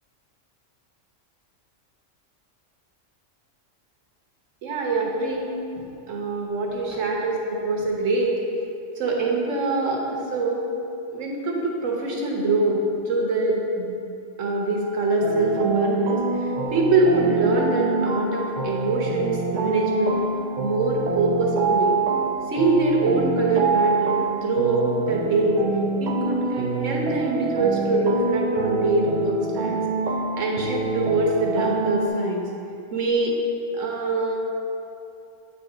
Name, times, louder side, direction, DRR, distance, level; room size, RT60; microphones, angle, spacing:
voice 1, 4.6-5.6 6.1-8.4 9.0-10.6 11.1-12.8 13.0-13.9 14.4-20.2 20.6-22.0 22.5-25.6 26.0-29.8 30.4-32.4 32.9-33.4 33.7-34.4, right 2 dB, 75° right, -1 dB, 1.5 m, -24 dB
sound 1, 15.2-32.1, right 4 dB, 55° right, 0.5 m, -26 dB
9.0 x 4.2 x 4.9 m, 2.7 s
omnidirectional pair, 1.3 m